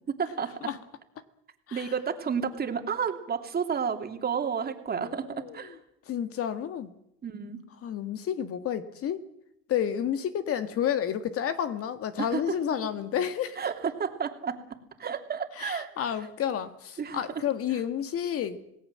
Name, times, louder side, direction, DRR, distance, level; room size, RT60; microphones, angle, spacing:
voice 1, 0.2-0.5 1.7-5.2 5.5-5.8 7.2-7.6 12.2-12.5 13.6-14.6 15.0-16.1 17.0-17.2, right 6 dB, 30° right, 2.9 m, -31 dB
voice 2, 5.0-5.6 6.1-6.9 7.8-9.2 9.7-13.6 15.6-18.6, left 9 dB, 45° left, 1.8 m, -30 dB
27.5 x 18.0 x 7.6 m
supercardioid pair, 110°, 32 cm